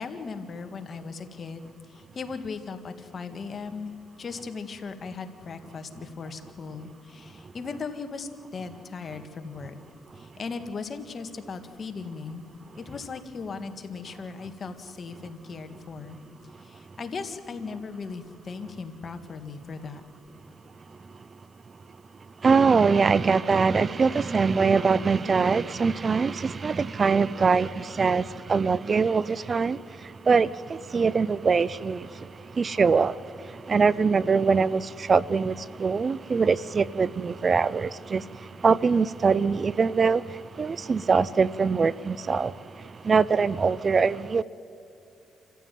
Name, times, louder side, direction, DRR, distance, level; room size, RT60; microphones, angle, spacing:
voice 1, 0.0-3.9 4.2-9.8 10.1-12.4 12.7-16.2 16.6-20.0, left 4 dB, 45° left, 1.9 m, -38 dB
voice 2, 22.4-32.3 32.5-44.4, right 5 dB, 40° right, 0.5 m, -23 dB
27.5 x 15.0 x 9.3 m
cardioid pair, 90°, 0 cm